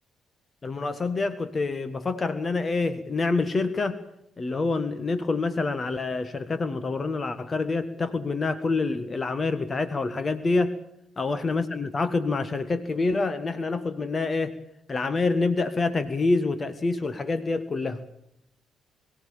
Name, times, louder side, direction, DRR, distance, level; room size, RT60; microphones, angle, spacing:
voice 1, 0.6-4.0 4.4-10.8 11.2-14.5 14.9-18.0, left 3 dB, 35° left, 12 dB, 1.6 m, -27 dB
23.0 x 15.0 x 8.6 m, 0.77 s
figure-of-eight pair, 40°, 0 cm